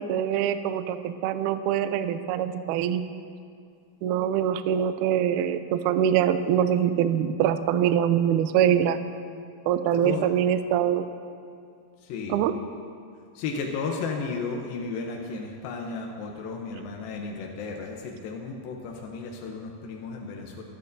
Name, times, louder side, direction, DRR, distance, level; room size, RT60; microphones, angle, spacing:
voice 1, 0.0-3.0 4.0-9.0 9.7-11.1 12.3-12.5, right 9 dB, 80° right, 10 dB, 1.8 m, -24 dB
voice 2, 12.0-12.4 13.4-20.6, left 4 dB, 85° left, 0 dB, 2.7 m, -34 dB
22.0 x 11.0 x 2.7 m, 2.3 s
omnidirectional pair, 4.1 m